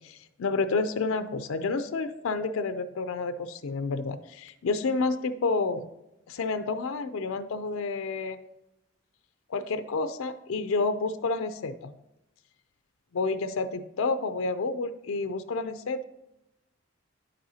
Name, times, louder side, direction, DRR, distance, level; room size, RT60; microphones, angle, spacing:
voice 1, 0.0-5.9 6.3-8.4 9.5-12.0 13.1-16.0, left 3 dB, 90° left, 10 dB, 0.5 m, -29 dB
9.5 x 7.6 x 2.8 m, 0.89 s
head